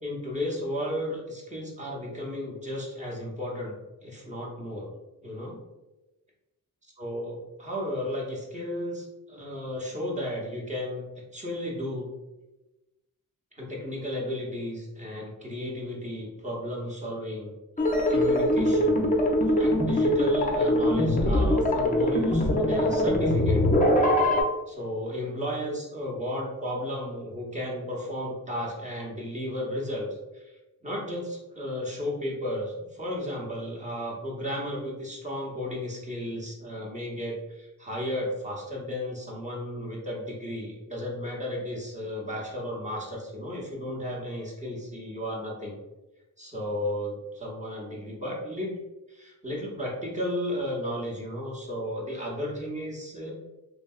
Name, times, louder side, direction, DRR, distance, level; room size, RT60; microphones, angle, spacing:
voice 1, 0.0-4.9 5.2-5.6 7.0-12.1 13.6-17.5 18.1-19.1 19.6-23.7 24.7-30.1 30.3-30.5 30.8-45.8 46.4-48.7 49.1-53.3, left 1 dB, 20° right, -3 dB, 0.8 m, -34 dB
sound 1, 17.8-24.4, left 1 dB, 25° left, 0.5 m, -22 dB
3.2 x 2.7 x 2.3 m, 1.0 s
wide cardioid pair, 105°, 33 cm